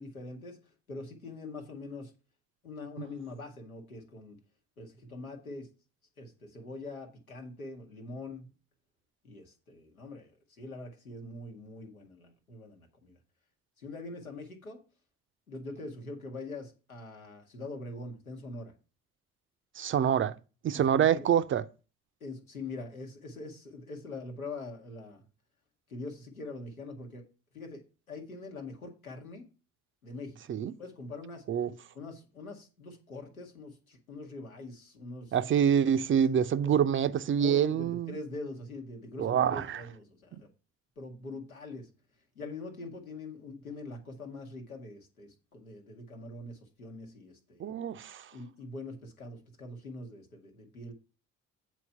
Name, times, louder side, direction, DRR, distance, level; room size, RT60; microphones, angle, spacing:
voice 1, 0.0-2.1 2.6-4.4 4.8-5.7 6.2-8.5 9.2-13.2 13.8-14.8 15.5-18.7 20.7-21.3 22.2-25.2 25.9-27.2 27.5-27.8 28.1-29.5 30.0-30.4 30.8-31.4 31.9-35.4 36.6-36.9 37.4-40.5 41.0-41.9 42.3-47.7 48.3-50.9, left 2 dB, 85° left, 1.2 m, -43 dB
voice 2, 19.8-20.4 20.6-21.6 30.5-30.7 31.5-31.7 35.3-38.2 39.2-39.8 40.3-40.4 47.6-48.3, right 8 dB, 30° right, 0.5 m, -26 dB
8.3 x 4.5 x 5.6 m
figure-of-eight pair, 45°, 41 cm